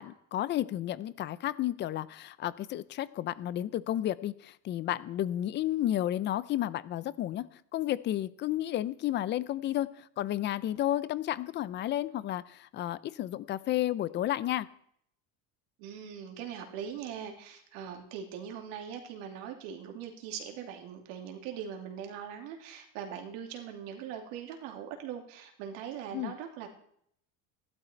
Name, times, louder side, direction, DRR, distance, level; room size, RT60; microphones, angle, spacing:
voice 1, 0.0-14.7 26.1-26.3, left 13 dB, 30° left, 18 dB, 0.4 m, -32 dB
voice 2, 15.8-26.7, right 8 dB, 80° right, 3 dB, 2.8 m, -41 dB
16.0 x 12.0 x 4.4 m, 0.67 s
cardioid pair, 170°, 37 cm